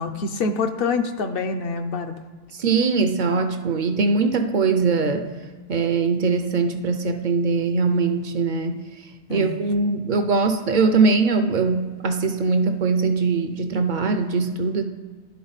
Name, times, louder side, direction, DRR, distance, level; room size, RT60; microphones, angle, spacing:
voice 1, 0.0-2.2 9.3-9.5, left 4 dB, 65° left, 8 dB, 0.8 m, -26 dB
voice 2, 2.6-5.3 5.7-8.8 9.3-14.8, right 4 dB, 55° right, 7 dB, 0.6 m, -21 dB
11.5 x 4.0 x 4.0 m, 1.4 s
omnidirectional pair, 1.1 m